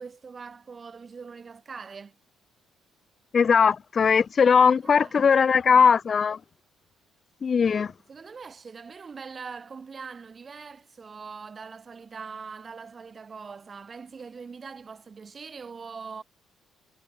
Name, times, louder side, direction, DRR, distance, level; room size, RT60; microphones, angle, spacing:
voice 1, 0.0-2.2 4.5-5.9 7.6-16.2, right 5 dB, 35° right, 3.0 m, -42 dB
voice 2, 3.3-6.4 7.4-7.9, left 6 dB, 40° left, 0.5 m, -19 dB
cardioid pair, 95°, 0 cm